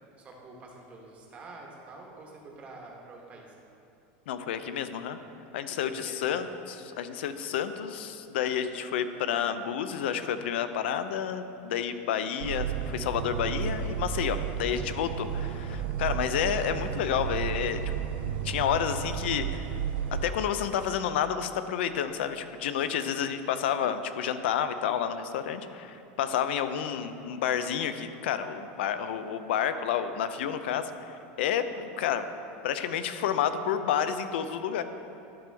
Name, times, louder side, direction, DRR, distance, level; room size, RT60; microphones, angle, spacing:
voice 1, 0.2-3.5 6.0-6.4, right 3 dB, 25° right, -1 dB, 1.2 m, -47 dB
voice 2, 4.3-5.2 5.5-17.8 18.2-19.7 20.2-30.9 31.4-32.2 32.6-34.8, left 8 dB, 90° left, 10 dB, 0.5 m, -30 dB
sound 1, 12.4-20.3, right 8 dB, 85° right, 0.5 m, -33 dB
12.0 x 5.3 x 3.4 m, 2.8 s
supercardioid pair, 165°, 6 cm